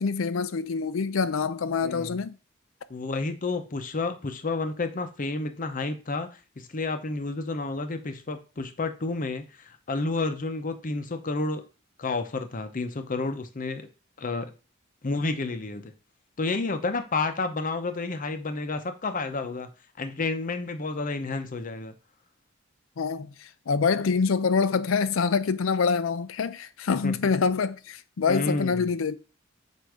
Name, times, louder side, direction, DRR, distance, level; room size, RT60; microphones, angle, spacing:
voice 1, 0.0-2.4 23.0-29.2, left 5 dB, 80° left, 0.5 m, -26 dB
voice 2, 1.8-2.2 2.9-6.3 6.6-11.6 12.0-13.9 14.2-14.5 15.0-15.9 16.4-19.7 20.0-21.9 27.0-27.1 28.3-28.9, left 3 dB, 40° left, 0.7 m, -30 dB
7.8 x 2.7 x 4.8 m
head